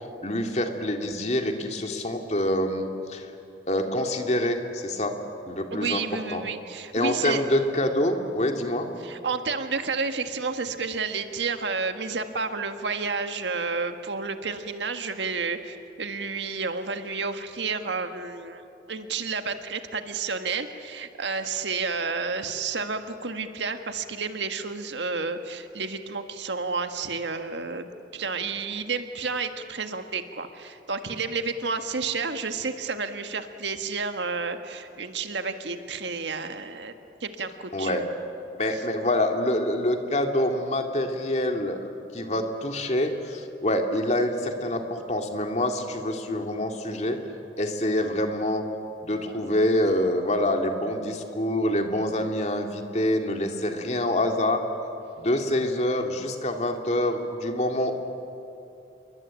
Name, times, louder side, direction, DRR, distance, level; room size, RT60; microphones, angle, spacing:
voice 1, 0.2-3.3 3.7-5.1 5.5-6.0 6.3-6.4 6.9-8.9 37.7-38.0 38.6-41.8 42.1-47.2 47.6-48.6 49.0-54.6 55.2-58.0, left 1 dB, 40° left, 4 dB, 2.3 m, -26 dB
voice 2, 5.7-7.4 9.0-36.9 37.2-38.0 38.7-38.8, right 4 dB, 80° right, 7 dB, 1.7 m, -31 dB
28.5 x 23.0 x 8.9 m, 2.7 s
head